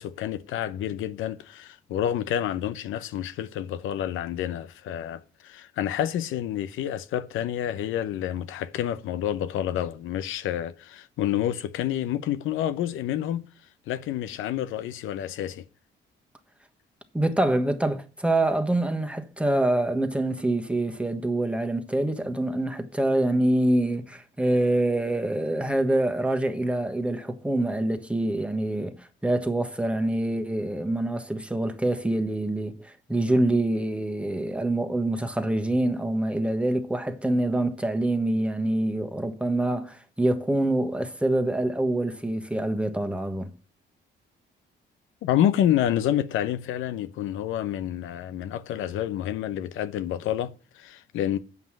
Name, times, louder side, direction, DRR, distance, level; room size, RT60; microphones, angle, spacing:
voice 1, 0.0-13.5 13.9-15.6 45.2-51.4, left 11 dB, 85° left, 0.8 m, -28 dB
voice 2, 17.1-43.5, right 1 dB, 5° right, 1.3 m, -25 dB
8.2 x 5.5 x 7.4 m
cardioid pair, 90°, 20 cm